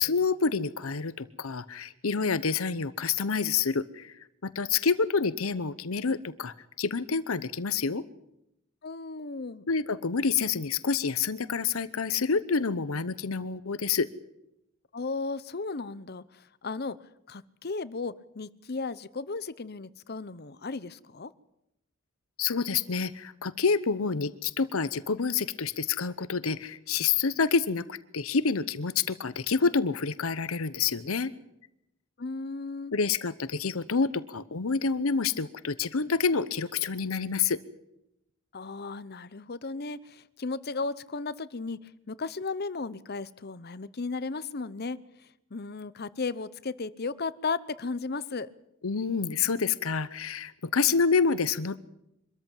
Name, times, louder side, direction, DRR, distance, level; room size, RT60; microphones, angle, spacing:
voice 1, 0.0-8.0 9.7-14.1 22.4-31.3 32.9-37.6 48.8-51.8, left 5 dB, 85° left, 15 dB, 0.9 m, -28 dB
voice 2, 8.8-9.6 14.9-17.0 17.3-21.3 32.2-32.9 38.5-45.0 45.5-48.5, left 4 dB, 50° left, 17 dB, 0.8 m, -35 dB
24.5 x 14.0 x 9.0 m, 0.83 s
head